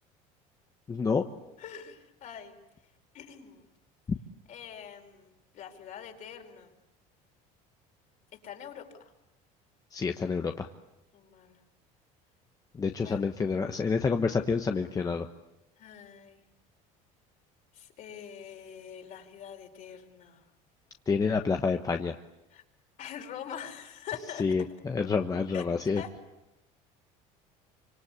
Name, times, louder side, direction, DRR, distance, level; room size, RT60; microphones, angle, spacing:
voice 1, 0.9-1.2 9.9-10.7 12.8-15.3 21.1-22.1 24.4-26.0, left 5 dB, 20° left, 5 dB, 1.2 m, -28 dB
voice 2, 1.6-2.6 3.1-3.7 4.5-6.8 8.3-9.1 11.1-11.6 13.0-13.3 15.8-16.4 17.7-20.4 22.5-22.6 23.0-24.5 25.5-25.7 26.0-26.1, left 8 dB, 50° left, 3 dB, 4.9 m, -44 dB
26.0 x 26.0 x 8.5 m, 0.91 s
cardioid pair, 120°, 17 cm